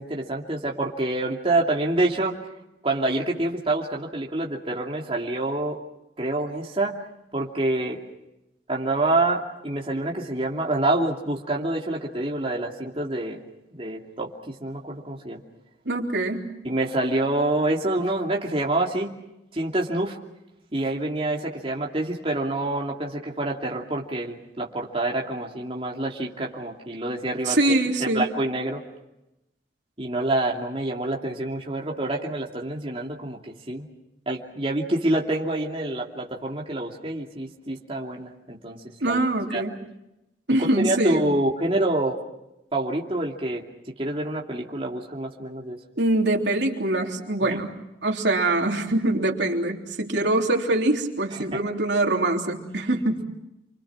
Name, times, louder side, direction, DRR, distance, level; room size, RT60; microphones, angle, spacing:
voice 1, 0.0-2.4 2.8-5.8 6.2-7.0 7.3-8.0 8.7-13.4 13.7-15.4 16.6-19.1 19.5-20.2 20.7-27.6 28.0-28.8 30.0-33.9 34.3-39.2 39.5-39.6 40.8-42.2 42.7-43.6 44.0-45.8 47.5-47.6 51.5-51.6, right 2 dB, 30° right, -1 dB, 2.6 m, -27 dB
voice 2, 15.9-16.5 27.5-28.3 39.0-39.7 40.5-41.2 46.0-47.7 48.0-53.2, right 2 dB, 75° right, 1 dB, 3.4 m, -23 dB
29.0 x 25.0 x 6.1 m, 0.90 s
head